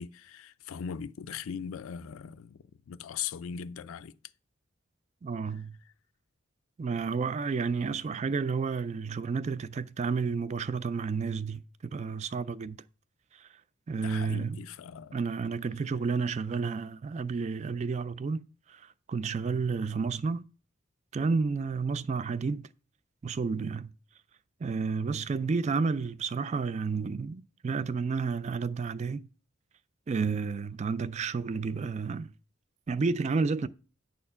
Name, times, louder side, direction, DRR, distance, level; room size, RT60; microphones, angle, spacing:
voice 1, 0.0-4.2 14.0-15.2, left 7 dB, 80° left, 0.4 m, -39 dB
voice 2, 5.2-5.8 6.8-12.8 13.3-13.5 13.9-14.6 15.1-18.4 18.7-20.5 21.1-22.7 23.2-23.9 24.6-29.3 30.1-32.3 32.9-33.7, right 4 dB, 35° right, 0.3 m, -31 dB
9.4 x 4.3 x 5.6 m
head